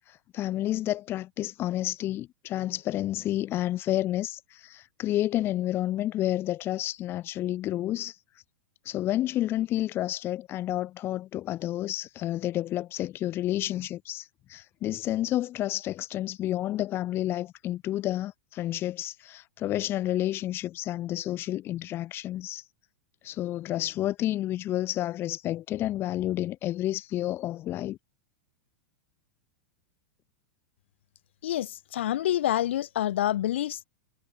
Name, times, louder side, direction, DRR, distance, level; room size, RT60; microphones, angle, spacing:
voice 1, 0.1-8.2 8.8-22.6 23.2-28.0, left 14 dB, 35° left, 4.4 m, -30 dB
voice 2, 31.4-33.8, left 12 dB, 60° left, 5.6 m, -27 dB
figure-of-eight pair, 95°, 7 cm